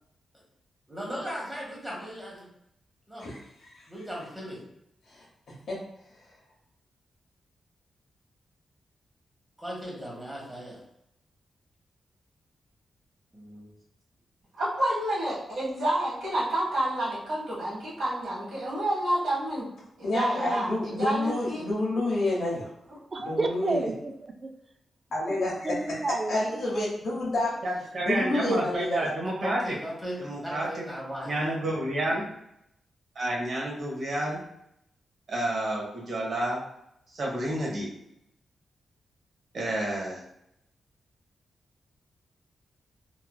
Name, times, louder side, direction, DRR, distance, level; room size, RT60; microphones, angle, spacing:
voice 1, 0.9-2.4 3.1-3.2 3.9-4.6 9.6-10.8 13.3-13.7 29.4-31.3 31.6-31.7 32.0-32.2, equal, 10° right, -3 dB, 1.0 m, -37 dB
voice 2, 3.2-3.8 5.1-5.2 5.7-5.8 20.0-22.7 23.2-23.9 25.1-25.8 26.3-27.6 28.1-29.1, left 2 dB, 75° left, -6 dB, 0.8 m, -29 dB
voice 3, 14.6-19.7 20.0-21.7, right 1 dB, 85° right, -6 dB, 1.4 m, -29 dB
voice 4, 23.1-24.5 25.3-26.8, right 3 dB, 30° right, 5 dB, 0.3 m, -32 dB
voice 5, 27.6-29.7 30.2-30.8 31.2-32.2 33.1-34.4 35.3-36.6 37.1-37.9 39.5-40.2, right 1 dB, 55° right, -2 dB, 0.9 m, -30 dB
3.0 x 2.5 x 2.2 m, 0.78 s
wide cardioid pair, 130°, 0 cm